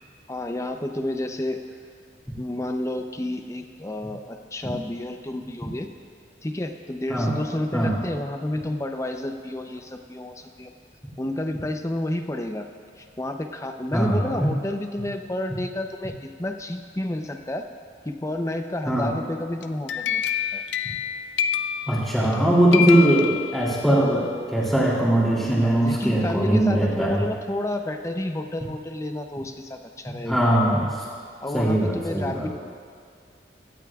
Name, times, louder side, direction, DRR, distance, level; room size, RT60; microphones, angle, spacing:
voice 1, 0.3-1.6 2.4-5.9 6.4-10.7 11.2-12.7 13.0-17.7 18.0-20.2 20.5-20.6 25.6-30.4 31.4-32.5, left 1 dB, 15° left, 5 dB, 0.6 m, -30 dB
sound 1, 19.6-22.4 22.7-24.0, left 9 dB, 80° left, 0.5 m, -28 dB
voice 2, 21.9-27.2 30.2-30.9 31.5-32.5, right 1 dB, ahead, -7 dB, 2.8 m, -20 dB
17.0 x 13.0 x 2.4 m, 2.2 s
head